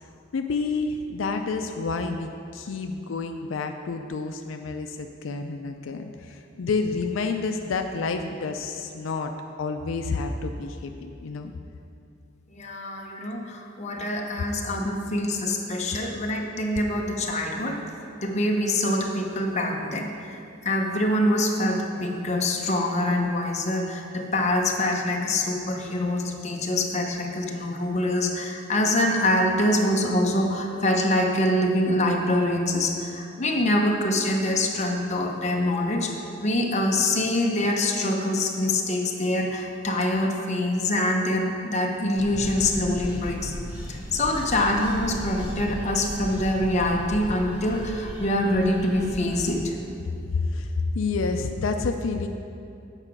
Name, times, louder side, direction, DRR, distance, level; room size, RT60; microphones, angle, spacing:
voice 1, 0.3-9.3 9.6-11.5 13.0-13.1 50.0-52.3, left 4 dB, 80° left, 5 dB, 0.4 m, -29 dB
voice 2, 12.5-17.8 18.2-36.1 36.4-43.5 43.9-49.8, left 1 dB, 35° left, 1 dB, 0.8 m, -25 dB
sound 1, 42.2-49.5, equal, 5° right, 1.5 m, -36 dB
8.9 x 4.8 x 5.9 m, 2.6 s
head